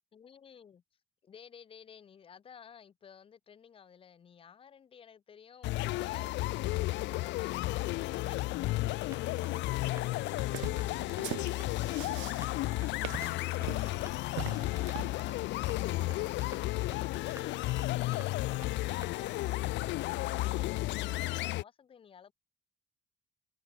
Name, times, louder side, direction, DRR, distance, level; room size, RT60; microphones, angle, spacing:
voice 1, 0.1-0.8 1.2-16.3 16.9-22.3, left 7 dB, 30° left, 1.2 m, -55 dB
sound 1, 5.6-21.6, left 18 dB, 70° left, 0.5 m, -33 dB
sound 2, 9.0-19.4, right 4 dB, 15° right, 0.7 m, -54 dB
sound 3, 10.4-15.2, right 20 dB, 85° right, 0.4 m, -42 dB
cardioid pair, 180°, 19 cm